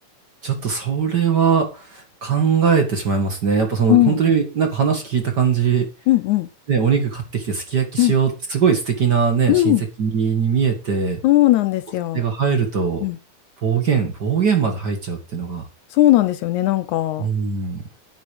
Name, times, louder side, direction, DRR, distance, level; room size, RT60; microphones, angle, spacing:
voice 1, 0.4-5.9 6.7-11.2 12.1-13.0 13.6-15.6 17.2-17.8, right 6 dB, 40° right, 2.1 m, -20 dB
voice 2, 6.1-6.5 8.0-8.1 9.5-9.8 11.2-12.2 13.0-13.2 15.9-17.3, left 15 dB, 75° left, 1.9 m, -17 dB
9.1 x 9.0 x 5.1 m
omnidirectional pair, 3.6 m